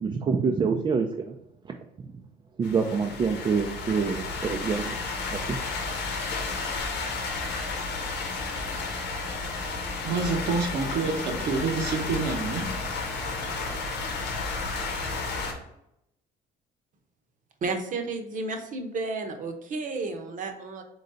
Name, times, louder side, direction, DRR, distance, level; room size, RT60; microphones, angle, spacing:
voice 1, 0.0-1.4 2.6-4.9 5.3-5.6, right 5 dB, 30° right, 2 dB, 0.4 m, -26 dB
sound 1, 2.6-15.5, left 3 dB, 90° left, 0.9 m, -32 dB
voice 2, 10.0-12.7, right 4 dB, 80° right, 2 dB, 1.0 m, -27 dB
voice 3, 17.6-20.8, right 3 dB, 50° right, 5 dB, 0.8 m, -32 dB
3.9 x 3.2 x 3.9 m, 0.81 s
cardioid pair, 110°, 17 cm